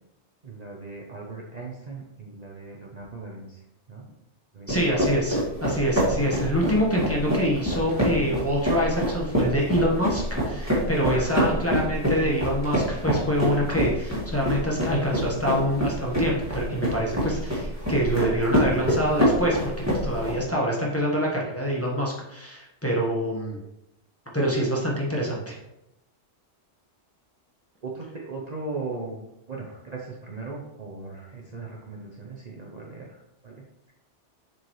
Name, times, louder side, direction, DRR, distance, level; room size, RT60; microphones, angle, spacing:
voice 1, 0.4-3.6 3.9-4.1 4.5-4.7 11.1-11.6 27.8-29.2 29.5-33.9, right 3 dB, 40° right, -2 dB, 0.8 m, -38 dB
voice 2, 4.7-19.7 20.0-23.6 24.3-25.6, equal, 10° left, -4 dB, 1.2 m, -26 dB
sound 1, 4.7-20.4, equal, 15° right, 1.8 m, -26 dB
7.4 x 4.7 x 3.1 m, 0.88 s
omnidirectional pair, 1.2 m